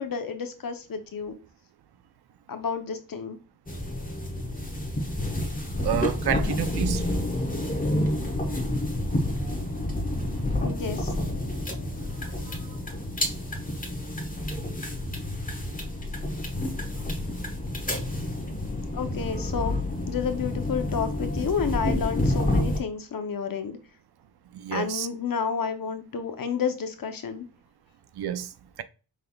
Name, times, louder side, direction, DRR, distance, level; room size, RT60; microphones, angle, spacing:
voice 1, 0.0-1.3 2.5-3.4 10.6-11.1 18.9-19.8 20.1-23.8 24.7-27.5, left 6 dB, 55° left, 0.8 m, -30 dB
sound 1, 3.7-22.8, left 1 dB, 20° left, 1.1 m, -29 dB
voice 2, 5.8-7.0 24.5-25.1 28.2-28.5, right 10 dB, 70° right, 0.6 m, -29 dB
5.6 x 3.3 x 2.3 m
wide cardioid pair, 90°, 41 cm